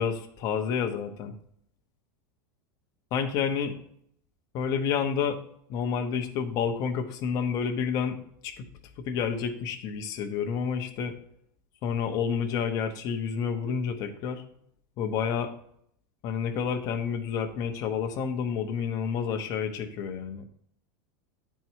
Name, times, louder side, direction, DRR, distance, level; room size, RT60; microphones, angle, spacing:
voice 1, 0.0-1.3 3.1-3.8 4.5-5.4 5.7-8.7 9.0-11.2 11.8-14.4 15.0-15.5 16.2-20.4, left 7 dB, 35° left, 5 dB, 0.9 m, -29 dB
9.6 x 4.6 x 4.6 m, 0.68 s
supercardioid pair, 170°, 11 cm